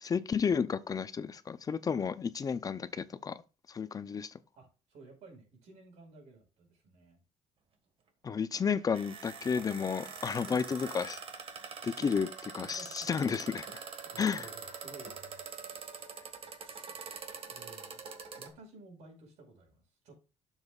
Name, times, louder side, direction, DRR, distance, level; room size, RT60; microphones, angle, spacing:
voice 1, 0.0-3.4 3.7-4.3 8.2-11.2 11.8-12.3 12.5-13.8 14.2-14.5, left 6 dB, 30° left, 0.5 m, -32 dB
voice 2, 4.5-7.2 10.4-10.6 11.9-12.2 12.6-13.1 14.1-15.4 17.5-18.0 18.4-20.1, right 3 dB, 75° right, 4.8 m, -54 dB
sound 1, 8.5-18.5, right 5 dB, 55° right, 1.6 m, -45 dB
12.0 x 7.2 x 2.4 m
cardioid pair, 110°, 11 cm